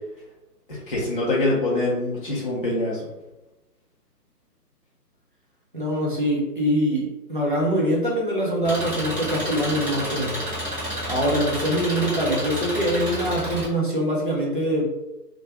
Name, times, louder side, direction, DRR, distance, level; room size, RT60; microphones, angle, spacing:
voice 1, 0.7-3.0, left 2 dB, 35° left, -8 dB, 0.5 m, -24 dB
voice 2, 5.7-10.4 11.1-14.8, equal, 35° right, -3 dB, 0.4 m, -24 dB
Engine, 8.6-13.6, equal, 5° right, 0.7 m, -30 dB
2.2 x 2.2 x 2.8 m, 0.97 s
figure-of-eight pair, 145°, 49 cm